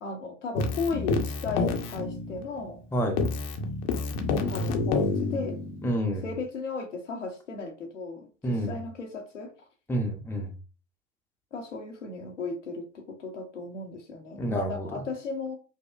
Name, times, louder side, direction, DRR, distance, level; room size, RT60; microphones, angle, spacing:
voice 1, 0.0-2.8 4.4-5.6 6.2-9.5 11.5-15.6, left 3 dB, 90° left, 0.9 m, -35 dB
Keyboard (musical), 0.6-2.8 3.2-5.9, left 4 dB, 55° left, 0.8 m, -29 dB
voice 2, 5.8-6.2 8.4-8.7 9.9-10.5 14.4-15.0, equal, 5° left, 0.7 m, -28 dB
5.2 x 2.1 x 2.4 m
hypercardioid pair, 85°, 36 cm